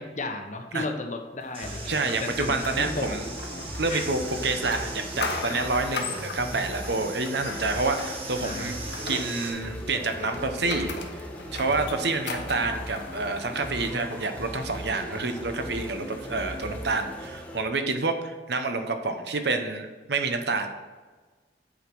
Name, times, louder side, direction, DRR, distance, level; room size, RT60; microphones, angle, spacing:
voice 1, 0.0-3.1 3.9-4.1 8.4-9.3, left 2 dB, 40° left, 5 dB, 0.9 m, -35 dB
sound 1, 1.5-9.5, right 3 dB, 30° right, 1.5 m, -40 dB
sound 2, 1.6-13.8, left 3 dB, 70° left, 1.1 m, -39 dB
sound 3, 1.6-17.6, equal, 10° left, 1.0 m, -38 dB
voice 2, 1.9-3.3 3.8-8.8 9.0-11.0 11.5-20.7, right 3 dB, 65° right, 6 dB, 0.9 m, -28 dB
8.5 x 5.0 x 6.1 m, 1.4 s
head